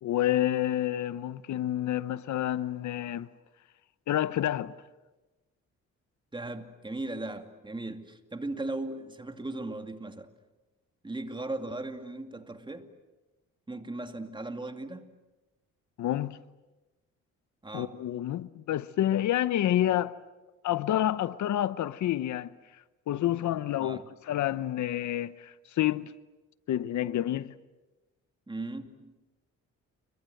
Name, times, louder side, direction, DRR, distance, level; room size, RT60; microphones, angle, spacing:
voice 1, 0.0-3.3 4.1-4.7 16.0-16.4 17.7-20.2 20.6-22.5 23.1-26.1 26.7-27.5, left 12 dB, 70° left, 0.9 m, -29 dB
voice 2, 6.3-10.3 11.0-12.9 13.7-15.1 17.6-18.0 23.8-24.1 28.5-29.1, right 2 dB, 15° right, 2.5 m, -37 dB
29.5 x 23.5 x 7.9 m
cardioid pair, 90°, 30 cm